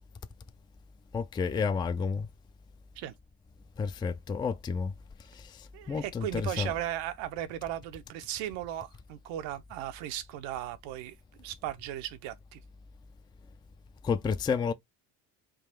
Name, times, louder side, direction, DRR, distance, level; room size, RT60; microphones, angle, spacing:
voice 1, 1.1-2.3 3.8-4.9 5.3-6.7 14.0-14.7, left 5 dB, 10° left, 0.3 m, -31 dB
voice 2, 5.7-12.6, right 12 dB, 75° right, 0.8 m, -37 dB
3.9 x 2.4 x 4.2 m
supercardioid pair, 70°, 46 cm